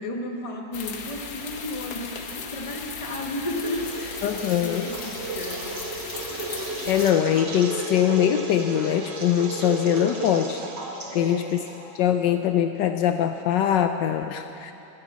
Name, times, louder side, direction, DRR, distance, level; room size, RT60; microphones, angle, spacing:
voice 1, 0.0-4.2 4.6-5.6 11.1-11.5, left 1 dB, 20° left, 1 dB, 1.2 m, -33 dB
sound 1, 0.7-7.1, left 6 dB, 60° left, 1.4 m, -37 dB
sound 2, 3.5-12.0, right 3 dB, 65° right, 2.1 m, -34 dB
voice 2, 4.2-4.9 6.8-10.6 11.1-11.6 11.9-14.7, left 10 dB, 75° left, 7 dB, 1.2 m, -22 dB
14.0 x 12.5 x 7.4 m, 2.8 s
omnidirectional pair, 2.1 m